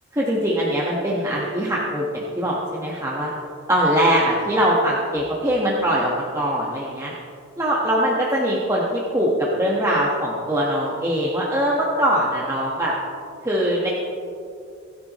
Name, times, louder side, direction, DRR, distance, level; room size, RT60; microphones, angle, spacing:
voice 1, 0.1-3.3 3.7-7.1 7.6-12.9 13.4-13.9, equal, 15° right, -5 dB, 1.4 m, -22 dB
24.0 x 10.5 x 3.1 m, 2.4 s
head